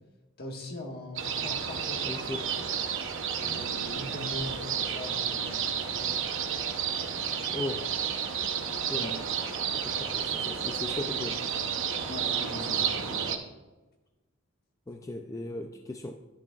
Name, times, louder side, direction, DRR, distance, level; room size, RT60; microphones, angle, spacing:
voice 1, 0.4-2.4 3.4-6.2 8.9-9.2 12.1-13.3, left 1 dB, 50° left, 1 dB, 1.6 m, -41 dB
sound 1, 1.2-13.4, right 7 dB, 65° right, 0.8 m, -31 dB
voice 2, 2.0-2.6 7.5-7.9 8.9-9.1 9.8-11.4 14.9-16.1, left 2 dB, 15° left, 4 dB, 0.4 m, -37 dB
sound 2, 2.4-13.1, right 3 dB, 90° right, 1.3 m, -48 dB
11.5 x 10.5 x 2.4 m, 1.2 s
head